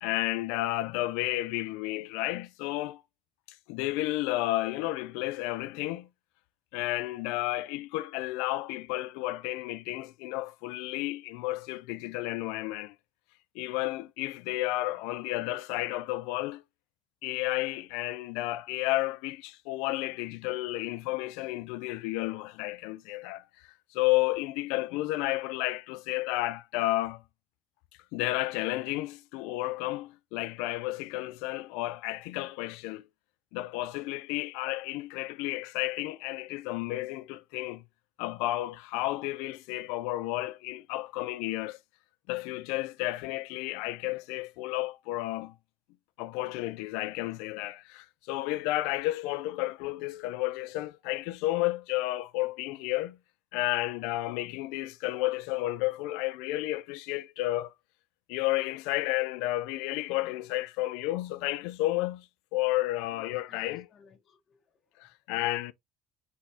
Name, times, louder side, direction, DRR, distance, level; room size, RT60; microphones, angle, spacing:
voice 1, 0.0-3.0 3.7-6.1 6.7-12.9 13.5-16.6 17.2-27.2 28.1-33.0 33.5-37.8 38.2-41.8 42.3-45.6 46.2-53.2 53.5-57.7 58.3-62.3 62.5-63.9 65.0-65.7, left 17 dB, 80° left, 0.4 m, -32 dB
voice 2, 63.0-65.1, left 6 dB, 45° left, 1.3 m, -60 dB
4.5 x 4.1 x 2.7 m
supercardioid pair, 75°, 0 cm